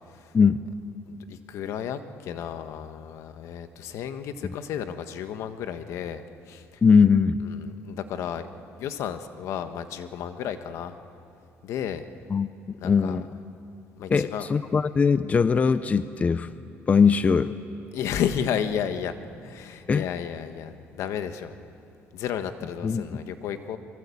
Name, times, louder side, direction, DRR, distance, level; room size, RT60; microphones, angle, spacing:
voice 1, 1.1-6.8 7.4-8.5 8.8-11.0 11.6-12.0 12.8-13.2 14.0-14.5 17.9-19.1 19.4-21.6 22.1-23.8, left 9 dB, 75° left, 9 dB, 1.5 m, -32 dB
voice 2, 6.8-7.4 12.3-12.5 12.8-13.3 14.1-16.5 16.9-17.5 19.9-20.0 22.8-23.2, left 5 dB, 30° left, 13 dB, 0.7 m, -20 dB
28.0 x 23.5 x 8.6 m, 2.6 s
cardioid pair, 120°, 5 cm